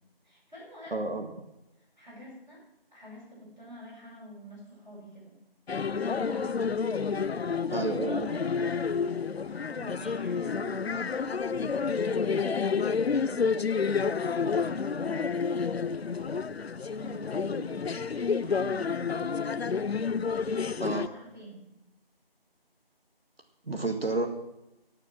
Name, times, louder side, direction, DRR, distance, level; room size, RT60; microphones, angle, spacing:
voice 1, 0.2-1.0 1.8-2.6 2.9-5.4 6.1-6.8 7.1-13.5 14.0-15.4 16.8-19.4 20.7-21.6, equal, 5° right, -19 dB, 6.2 m, -47 dB
voice 2, 0.9-1.3 7.7-8.3 20.8-21.1 23.7-24.3, right 3 dB, 75° right, 3 dB, 2.0 m, -30 dB
sound 1, 5.7-21.1, left 5 dB, 90° left, 0.6 m, -29 dB
17.0 x 6.7 x 6.1 m, 0.89 s
figure-of-eight pair, 175°, 30 cm